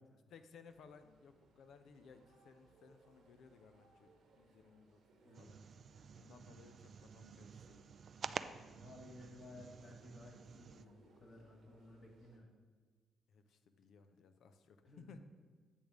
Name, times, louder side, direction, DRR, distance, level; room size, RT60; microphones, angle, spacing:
voice 1, 0.3-5.6 6.1-7.8 13.3-15.2, left 5 dB, 70° left, 9 dB, 0.6 m, -61 dB
sound 1, 0.6-12.4, right 3 dB, 75° right, 1.2 m, -69 dB
sound 2, 5.3-10.8, right 6 dB, 55° right, 0.3 m, -50 dB
voice 2, 8.7-12.6 14.8-15.1, left 1 dB, 55° left, -1 dB, 1.8 m, -57 dB
8.5 x 3.5 x 6.2 m, 1.5 s
hypercardioid pair, 50°, 0 cm